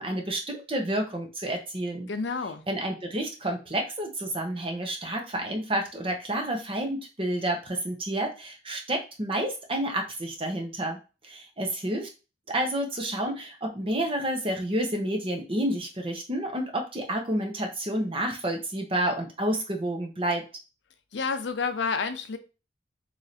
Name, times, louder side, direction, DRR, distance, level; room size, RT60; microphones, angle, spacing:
voice 1, 0.0-2.1 2.7-11.0 11.2-12.1 12.5-20.4, right 1 dB, 30° right, 0.8 m, -30 dB
voice 2, 2.1-2.6 21.1-22.4, left 5 dB, 70° left, 0.5 m, -29 dB
3.2 x 2.7 x 4.1 m
head